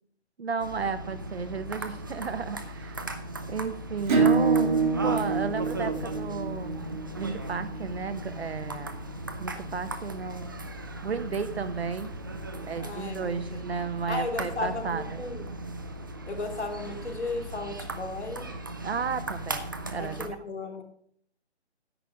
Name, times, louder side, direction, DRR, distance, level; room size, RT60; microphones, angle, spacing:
voice 1, 0.4-3.1 3.5-4.8 5.0-6.8 7.1-8.9 9.4-10.5 11.0-12.1 12.7-15.2 18.8-20.4, right 5 dB, 65° right, 11 dB, 1.2 m, -33 dB
sound 1, 0.6-20.3, right 2 dB, 20° right, 0.4 m, -38 dB
Acoustic guitar / Strum, 4.1-9.3, right 4 dB, 45° right, 1.5 m, -27 dB
voice 2, 12.8-13.6 14.1-15.5 16.3-18.5 20.0-20.8, left 3 dB, 80° left, 2 dB, 2.9 m, -35 dB
10.0 x 8.9 x 4.9 m, 0.64 s
figure-of-eight pair, 150°, 34 cm